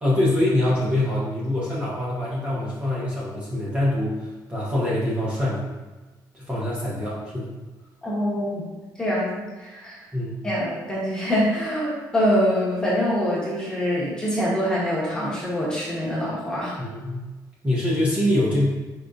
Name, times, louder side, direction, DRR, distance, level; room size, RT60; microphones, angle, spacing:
voice 1, 0.0-5.7 6.3-7.6 10.1-10.3 16.8-17.3 17.6-18.6, left 1 dB, 15° right, -7 dB, 1.0 m, -24 dB
voice 2, 8.0-10.0 10.4-16.8, equal, 10° left, -7 dB, 1.2 m, -25 dB
5.1 x 3.6 x 2.6 m, 1.2 s
cardioid pair, 170°, 8 cm